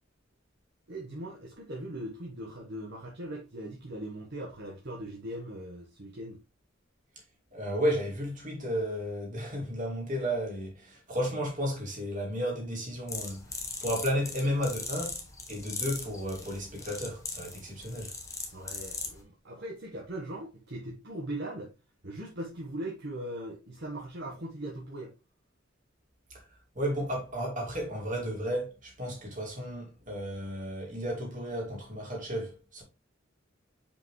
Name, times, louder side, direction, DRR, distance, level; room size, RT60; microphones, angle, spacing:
voice 1, 0.9-6.4 18.5-21.7 22.0-25.1, right 1 dB, 60° right, 1.4 m, -40 dB
voice 2, 7.5-13.5 13.8-15.2 15.5-18.1 26.3-26.5 26.7-32.8, equal, 40° right, 2.6 m, -33 dB
sound 1, 13.1-19.2, left 3 dB, 15° left, 1.2 m, -39 dB
5.6 x 5.2 x 3.2 m
head